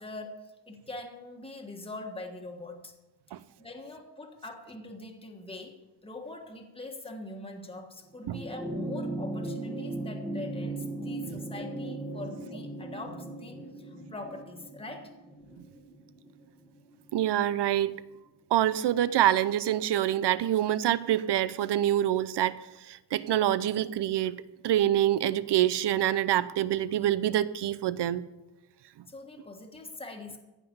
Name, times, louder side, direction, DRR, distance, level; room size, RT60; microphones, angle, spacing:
voice 1, 0.0-2.9 3.6-15.1 29.1-30.4, left 2 dB, 15° left, 2 dB, 1.4 m, -43 dB
sound 1, 8.2-16.9 18.2-18.3, right 2 dB, 5° right, 1.0 m, -37 dB
voice 2, 17.1-18.0 18.5-22.6 22.8-24.4 24.6-28.2, right 12 dB, 70° right, 16 dB, 0.7 m, -26 dB
15.0 x 5.9 x 8.7 m, 1.1 s
wide cardioid pair, 155°, 42 cm